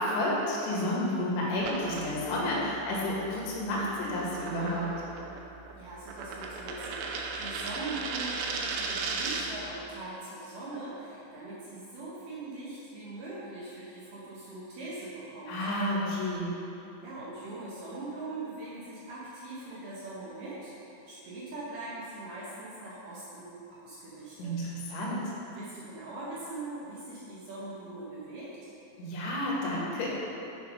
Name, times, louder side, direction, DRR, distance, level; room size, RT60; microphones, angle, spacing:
voice 1, 0.0-5.0 15.5-16.6 24.4-25.3 29.0-30.1, left 1 dB, 75° left, -4 dB, 3.9 m, -31 dB
sound 1, 1.6-9.6, right 4 dB, 90° right, 3.1 m, -37 dB
voice 2, 5.8-15.6 17.0-24.5 24.9-25.0 25.5-28.5, right 2 dB, 70° right, -7 dB, 2.0 m, -41 dB
8.0 x 6.7 x 5.2 m, 2.8 s
omnidirectional pair, 5.5 m